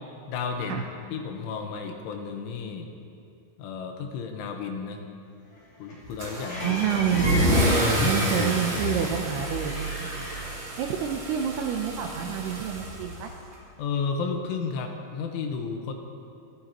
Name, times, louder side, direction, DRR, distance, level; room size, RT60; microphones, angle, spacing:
voice 1, 0.3-0.8 1.1-2.9 3.6-5.0 5.8-6.8 7.6-8.5 13.8-15.9, left 5 dB, 85° left, 4 dB, 3.6 m, -32 dB
sound 1, 5.5-11.3, left 1 dB, 40° left, 4.3 m, -38 dB
Car / Engine starting / Accelerating revving vroom, 6.2-13.5, right 1 dB, 40° right, 4.1 m, -28 dB
voice 2, 6.6-7.5 8.0-10.3 10.8-13.3, right 8 dB, 80° right, 3 dB, 2.4 m, -28 dB
27.5 x 14.5 x 3.0 m, 2.5 s
omnidirectional pair, 5.5 m